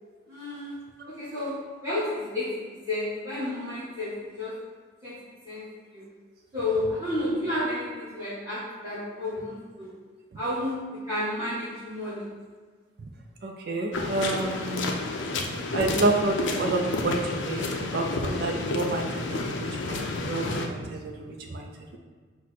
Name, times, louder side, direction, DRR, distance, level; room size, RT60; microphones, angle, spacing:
voice 1, 0.3-0.8 1.1-2.6 2.9-4.5 5.0-5.2 5.4-5.6 5.9-6.0 6.5-9.9 10.3-12.2, left 1 dB, 15° right, -12 dB, 1.4 m, -31 dB
voice 2, 13.4-14.9 15.7-17.7 17.9-22.0, right 2 dB, 55° right, 2 dB, 0.4 m, -29 dB
sound 1, 13.9-20.7, left 2 dB, 70° left, 0.5 m, -30 dB
5.9 x 2.1 x 4.1 m, 1.5 s
head